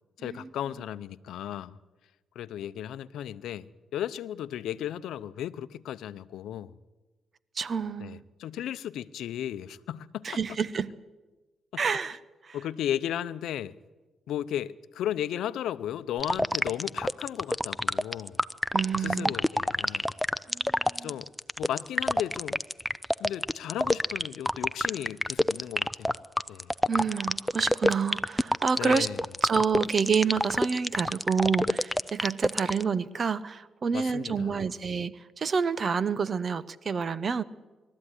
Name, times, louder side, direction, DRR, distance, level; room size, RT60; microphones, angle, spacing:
voice 1, 0.2-1.8 2.3-6.7 8.0-10.2 12.5-13.8 14.3-18.4 19.0-20.1 21.0-21.3 21.6-22.6 23.2-26.2 26.5-26.7 28.8-29.2 33.9-34.6, left 11 dB, 80° left, 0.7 m, -35 dB
voice 2, 7.5-8.2 10.2-10.9 11.8-12.6 18.7-19.3 20.5-21.1 26.9-29.1 29.4-37.4, right 5 dB, 45° right, 0.8 m, -28 dB
sound 1, 16.2-32.8, left 1 dB, 5° left, 0.6 m, -26 dB
22.0 x 13.5 x 9.9 m
cardioid pair, 75°, 0 cm